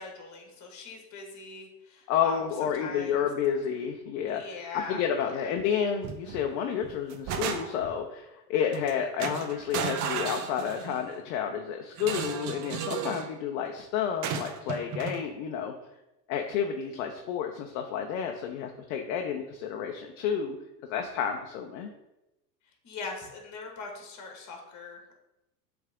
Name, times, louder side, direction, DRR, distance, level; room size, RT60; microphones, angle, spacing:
voice 1, 0.0-2.4 2.7-3.2 4.3-5.0 5.3-5.5 22.8-25.1, left 4 dB, 35° left, 2 dB, 1.9 m, -41 dB
voice 2, 2.1-4.4 4.9-15.7 16.3-20.6 20.9-21.9, left 8 dB, 55° left, 3 dB, 0.8 m, -30 dB
sound 1, 6.0-6.4 6.8-8.0 8.7-8.9 9.2-11.0 12.0-13.3 14.2-15.2, right 7 dB, 35° right, 0.7 m, -34 dB
7.3 x 3.5 x 3.7 m, 0.93 s
hypercardioid pair, 100°, 50 cm